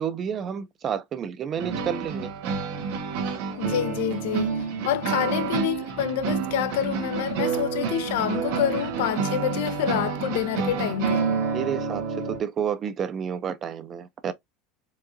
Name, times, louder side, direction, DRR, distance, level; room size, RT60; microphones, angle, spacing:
voice 1, 0.0-2.3 5.1-5.2 11.5-14.3, right 8 dB, 25° right, 0.4 m, -30 dB
sound 1, 1.6-12.4, right 6 dB, 60° right, 1.3 m, -28 dB
voice 2, 3.6-11.4, left 10 dB, 75° left, 0.5 m, -27 dB
4.6 x 2.3 x 2.5 m
supercardioid pair, 175°, 0 cm